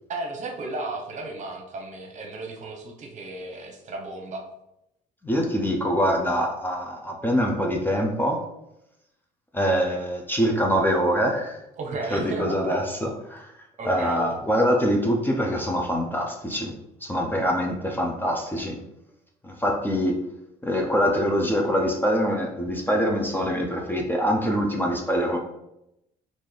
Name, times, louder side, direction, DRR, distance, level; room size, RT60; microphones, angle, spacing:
voice 1, 0.1-4.4 11.8-12.7 13.8-14.2, right 2 dB, 45° right, 2 dB, 0.8 m, -34 dB
voice 2, 5.2-8.4 9.5-11.6 12.1-13.5 13.9-16.7 17.0-18.8 19.4-20.2 20.6-25.4, equal, 10° left, 1 dB, 0.5 m, -24 dB
3.2 x 2.5 x 3.8 m, 0.84 s
cardioid pair, 110°, 17 cm